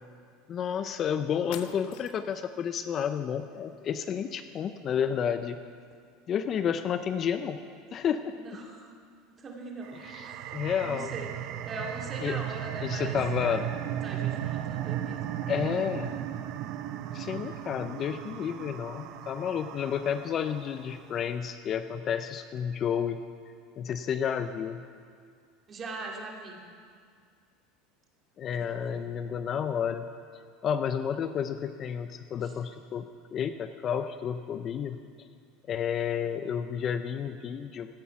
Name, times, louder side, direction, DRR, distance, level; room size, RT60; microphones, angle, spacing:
voice 1, 0.5-5.6 6.3-7.6 7.9-8.3 10.0-11.1 12.2-12.4 12.8-13.6 15.5-16.1 17.1-23.2 23.8-24.8 28.4-30.1 30.6-35.0 35.7-37.9, left 8 dB, 35° left, 10 dB, 0.5 m, -31 dB
sound 1, 0.9-1.0 1.5-2.4, left 11 dB, 65° left, 0.8 m, -45 dB
voice 2, 8.4-8.9 9.4-10.0 10.2-15.2 25.7-26.6 28.5-29.0 32.4-32.5, right 3 dB, 30° right, 0 dB, 2.3 m, -41 dB
sound 2, 9.8-21.0, right 11 dB, 55° right, 0.7 m, -36 dB
16.5 x 10.0 x 5.8 m, 2.1 s
supercardioid pair, 130°, 0 cm